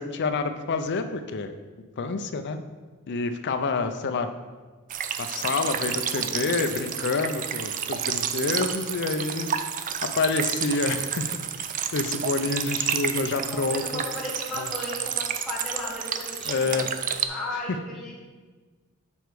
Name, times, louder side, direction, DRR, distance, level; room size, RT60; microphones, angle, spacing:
voice 1, 0.0-1.6 2.0-2.6 3.1-4.3 5.2-9.5 10.0-11.3 11.9-14.0 14.6-14.7 16.5-16.9, left 4 dB, 50° left, 8 dB, 0.5 m, -28 dB
sound 1, 4.9-17.3, right 8 dB, 35° right, 0.4 m, -30 dB
voice 2, 13.5-18.1, left 1 dB, 5° left, -6 dB, 1.5 m, -36 dB
7.1 x 4.5 x 4.7 m, 1.4 s
head